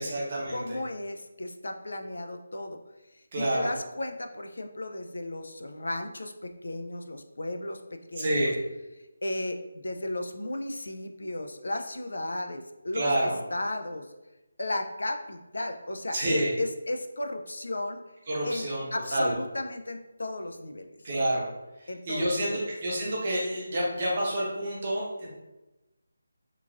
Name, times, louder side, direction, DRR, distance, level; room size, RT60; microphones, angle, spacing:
voice 1, 0.0-0.8 3.3-3.7 8.2-8.6 12.9-13.4 16.1-16.5 18.3-19.3 21.0-21.5 21.8-25.3, right 1 dB, 25° right, -5 dB, 0.6 m, -28 dB
voice 2, 0.5-2.8 3.1-6.3 6.6-7.8 8.1-8.5 9.2-14.1 14.6-18.0 18.4-18.7 18.9-20.9 21.9-22.6, left 1 dB, 80° left, 5 dB, 0.3 m, -35 dB
2.9 x 2.4 x 2.4 m, 1.0 s
figure-of-eight pair, 175°, 0 cm